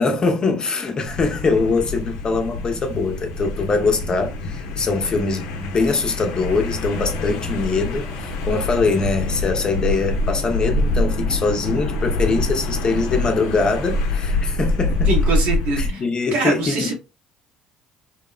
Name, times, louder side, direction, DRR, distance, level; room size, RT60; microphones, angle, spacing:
voice 1, 0.0-15.1 15.8-16.9, left 4 dB, 35° left, 0.6 m, -22 dB
sound 1, 1.0-15.9, left 2 dB, 75° left, 0.6 m, -25 dB
voice 2, 15.1-16.0 16.3-16.9, right 2 dB, 70° right, 1.1 m, -23 dB
2.8 x 2.1 x 2.3 m
supercardioid pair, 75°, 2 cm